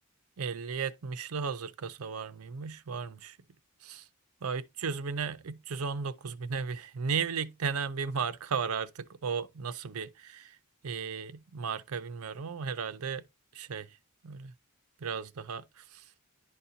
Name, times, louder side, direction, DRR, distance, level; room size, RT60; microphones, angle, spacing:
voice 1, 0.4-3.4 3.8-4.1 4.4-10.6 10.8-13.2 13.5-13.9 14.2-14.5 15.0-16.0, right 6 dB, 70° right, 0.5 m, -35 dB
11.0 x 4.2 x 2.7 m
head